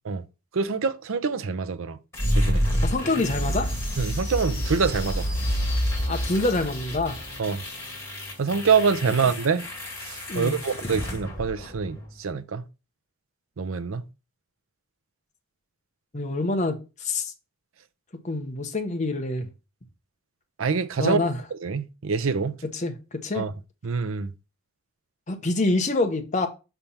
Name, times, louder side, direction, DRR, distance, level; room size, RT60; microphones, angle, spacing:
voice 1, 0.5-2.0 2.4-2.7 4.0-5.3 7.4-7.6 8.4-9.6 10.0-12.6 13.6-14.1 20.6-21.2 21.6-22.6 23.3-23.5 23.8-24.3, right 5 dB, 70° right, 0.6 m, -25 dB
sound 1, 2.1-12.1, equal, 10° left, 2.2 m, -28 dB
voice 2, 2.8-3.7 6.1-7.2 10.3-10.6 16.1-17.3 18.2-19.5 21.0-21.4 22.7-23.4 25.3-26.5, left 2 dB, 35° left, 1.0 m, -26 dB
5.8 x 3.4 x 5.6 m
head